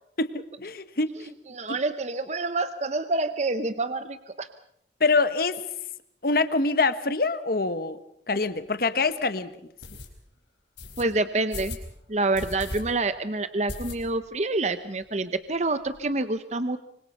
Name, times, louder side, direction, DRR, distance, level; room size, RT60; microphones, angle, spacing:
voice 1, 0.6-1.3 1.7-1.8 5.0-5.6 6.2-8.0 8.3-9.5, left 3 dB, 55° left, 12 dB, 1.2 m, -25 dB
voice 2, 1.5-4.5 11.0-11.8 12.1-16.8, right 2 dB, 40° right, 11 dB, 0.8 m, -27 dB
sound 1, 8.4-8.5 9.0-9.1 9.8-10.1 10.8-11.0 11.5-11.9 12.3-12.8 13.1-13.2 13.7-14.3 14.7-14.8 15.0-15.1 15.4-16.0, left 2 dB, 90° left, 4.5 m, -38 dB
25.0 x 25.0 x 5.6 m, 0.74 s
head